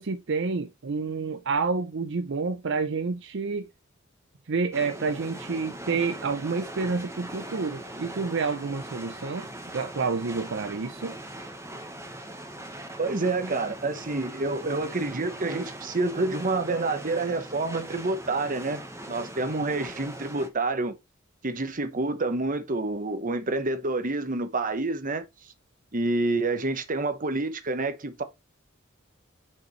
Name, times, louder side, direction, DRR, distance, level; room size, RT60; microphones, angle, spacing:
voice 1, 0.0-3.7 4.5-9.5 9.7-11.1, right 4 dB, 60° right, 0.6 m, -29 dB
sound 1, 4.7-20.5, right 1 dB, 15° right, 1.2 m, -41 dB
voice 2, 13.0-21.0 21.4-25.2 25.9-28.2, right 2 dB, 40° right, 1.0 m, -28 dB
6.8 x 5.3 x 3.2 m
head